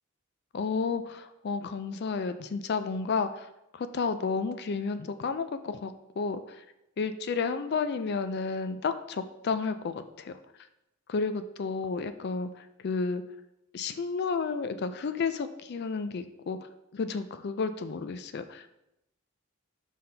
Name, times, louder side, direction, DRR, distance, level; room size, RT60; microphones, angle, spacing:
voice 1, 0.5-3.5 3.7-6.6 7.0-10.3 11.1-13.2 13.7-16.6 16.9-18.7, left 4 dB, 50° left, 11 dB, 0.4 m, -31 dB
5.7 x 5.4 x 3.3 m, 0.86 s
head